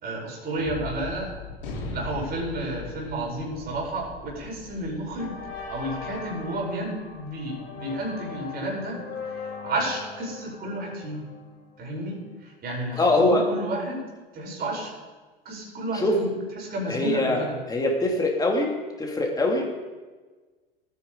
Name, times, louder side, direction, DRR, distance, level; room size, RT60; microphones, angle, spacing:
voice 1, 0.0-1.3 1.9-5.3 5.7-9.0 9.6-11.2 11.8-14.0 14.3-14.9 15.4-17.6, right 1 dB, 30° right, -2 dB, 5.1 m, -31 dB
Gunshot gunfire, 0.6-7.1, left 2 dB, 60° left, 3.6 m, -40 dB
sound 1, 4.4-4.7 5.2-12.0, left 5 dB, 45° left, 4.2 m, -40 dB
voice 2, 13.0-13.4 15.9-16.2 16.9-19.8, left 2 dB, 10° left, 1 dB, 2.7 m, -23 dB
18.5 x 9.7 x 3.9 m, 1.3 s
figure-of-eight pair, 85°, 30 cm